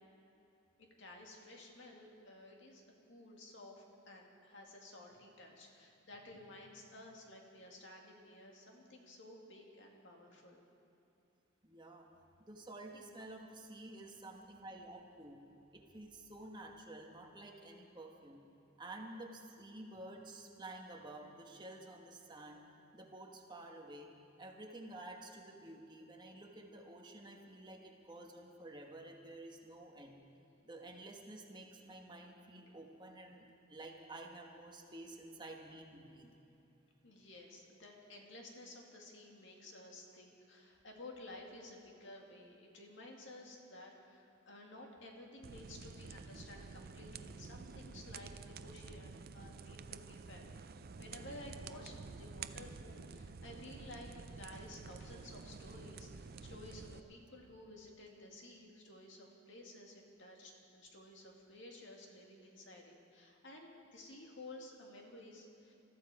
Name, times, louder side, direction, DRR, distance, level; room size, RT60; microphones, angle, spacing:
voice 1, 0.8-10.6 37.0-50.6 51.0-65.7, left 1 dB, 65° left, 0 dB, 2.2 m, -54 dB
voice 2, 11.6-12.1 12.4-15.4 15.7-18.4 18.8-22.6 22.9-24.1 24.4-30.2 30.6-36.3, right 2 dB, 20° right, 1 dB, 1.3 m, -51 dB
sound 1, 45.4-57.0, right 4 dB, 50° right, 0.4 m, -50 dB
21.0 x 13.5 x 4.9 m, 3.0 s
head